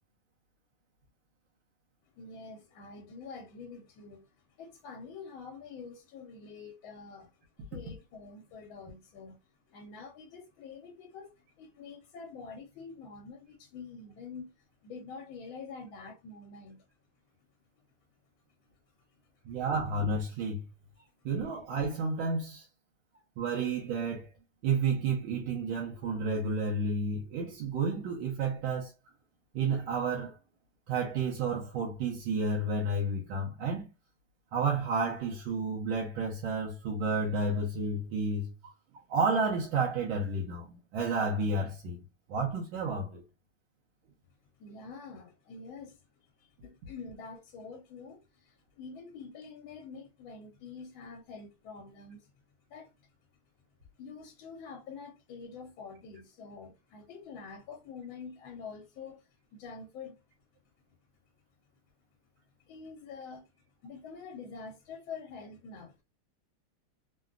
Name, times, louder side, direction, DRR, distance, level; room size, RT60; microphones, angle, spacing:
voice 1, 2.2-9.4 9.7-14.5 14.8-16.8 44.6-46.1 46.4-52.3 52.7-53.1 54.0-60.2 62.6-63.5 63.8-66.0, left 5 dB, 80° left, 1.4 m, -46 dB
voice 2, 19.4-20.7 21.2-22.7 23.4-24.3 24.6-28.9 29.5-30.4 30.9-33.9 34.5-38.7 39.1-42.0 42.3-43.2, right 3 dB, 75° right, 1.5 m, -31 dB
3.8 x 2.2 x 2.3 m
omnidirectional pair, 2.3 m